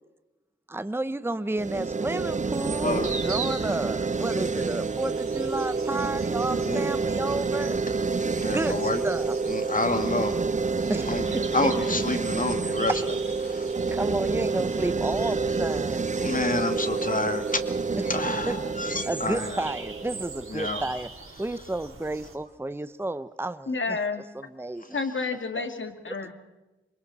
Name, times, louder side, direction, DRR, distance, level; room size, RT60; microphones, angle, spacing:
voice 1, 0.7-7.8 8.5-9.4 10.9-11.4 12.9-13.0 13.4-16.0 18.0-18.2 18.5-18.6 19.1-21.1 21.4-23.8 24.3-25.0 25.5-25.7 26.1-26.3, right 2 dB, 10° right, 13 dB, 0.8 m, -31 dB
sound 1, 1.6-20.6, right 4 dB, 35° right, 0.6 m, -28 dB
sound 2, 2.5-22.4, right 4 dB, 85° right, 3.7 m, -42 dB
voice 2, 2.8-3.1 6.6-6.8 8.4-9.0 9.5-10.4 11.1-11.2 11.5-12.9 13.4-13.6 16.2-17.6 18.1-19.6 20.5-20.8, left 2 dB, 40° left, 7 dB, 2.3 m, -28 dB
voice 3, 23.7-24.2 24.9-26.3, left 4 dB, 65° left, 6 dB, 2.6 m, -30 dB
27.0 x 24.5 x 4.3 m, 1.1 s
cardioid pair, 45°, 21 cm